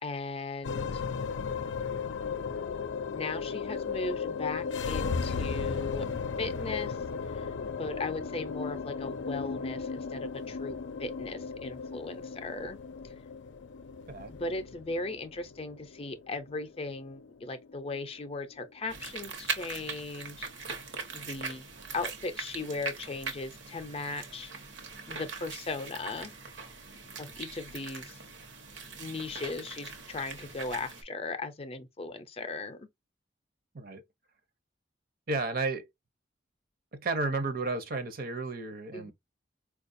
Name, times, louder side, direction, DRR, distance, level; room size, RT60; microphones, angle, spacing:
voice 1, 0.0-1.0 3.1-6.1 6.4-7.0 7.3-12.8 14.3-20.8 21.1-21.6 21.9-24.5 25.1-26.3 27.2-28.2 29.0-32.9 38.9-39.1, left 3 dB, 35° left, 0.5 m, -38 dB
sound 1, 0.6-19.1, left 5 dB, 85° left, 0.4 m, -36 dB
sound 2, 18.9-31.0, right 4 dB, 85° right, 0.9 m, -41 dB
voice 2, 35.3-35.9 36.9-39.1, right 3 dB, 55° right, 0.6 m, -32 dB
4.4 x 2.3 x 2.5 m
head